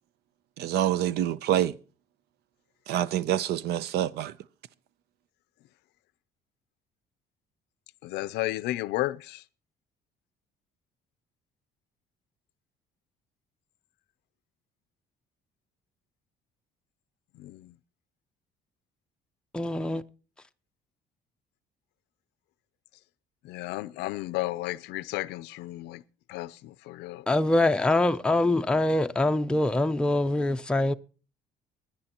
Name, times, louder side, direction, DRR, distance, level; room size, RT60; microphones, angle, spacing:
voice 1, 0.6-1.8 2.9-4.3, right 11 dB, 75° right, 0.6 m, -26 dB
voice 2, 8.0-9.4 17.4-17.7 23.4-26.0 26.3-27.3, left 17 dB, 90° left, 0.5 m, -33 dB
voice 3, 19.5-20.0 27.3-30.9, left 2 dB, 5° left, 0.5 m, -24 dB
23.0 x 10.0 x 2.9 m
cardioid pair, 110°, 17 cm